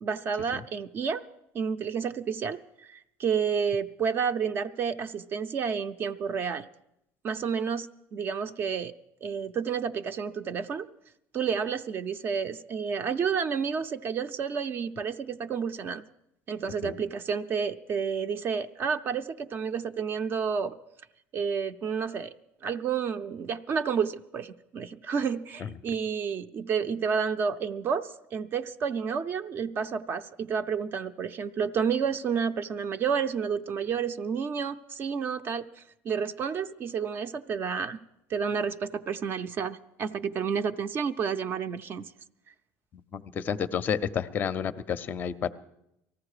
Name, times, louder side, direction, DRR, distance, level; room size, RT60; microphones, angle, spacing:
voice 1, 0.0-1.2 1.5-2.6 2.9-6.7 7.2-8.9 9.2-10.9 11.3-16.0 16.5-20.7 21.3-22.3 22.6-35.7 36.0-38.0 38.3-42.0, right 6 dB, 35° right, 10 dB, 0.5 m, -30 dB
voice 2, 43.1-45.5, left 7 dB, 30° left, 15 dB, 0.5 m, -30 dB
19.0 x 14.5 x 4.9 m, 0.82 s
cardioid pair, 145°, 6 cm